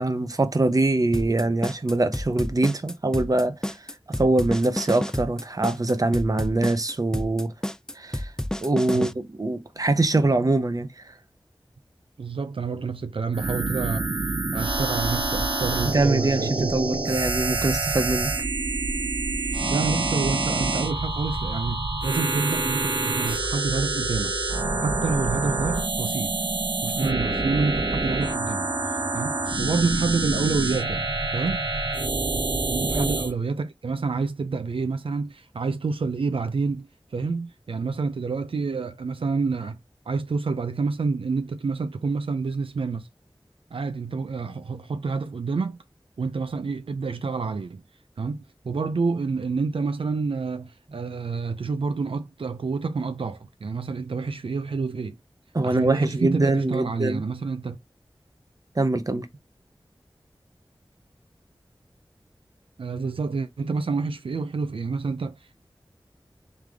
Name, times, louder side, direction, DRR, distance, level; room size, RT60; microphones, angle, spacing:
voice 1, 0.0-3.6 4.2-7.5 7.9-8.3 8.6-11.0 15.7-18.3 27.0-27.2 32.9-33.1 55.5-57.2 58.8-59.3, right 2 dB, 40° right, 0.7 m, -23 dB
sound 1, 1.1-9.1, left 1 dB, 5° left, 0.3 m, -30 dB
voice 2, 12.2-14.2 14.5-17.0 19.7-26.3 26.8-31.1 31.3-31.8 32.7-39.8 40.1-43.1 43.7-45.8 46.2-47.8 48.2-55.2 55.6-57.8 62.8-65.6, right 4 dB, 85° right, 0.4 m, -28 dB
sound 2, 13.3-33.3, right 2 dB, 60° right, 1.0 m, -27 dB
3.6 x 3.3 x 3.4 m
wide cardioid pair, 55°, 9 cm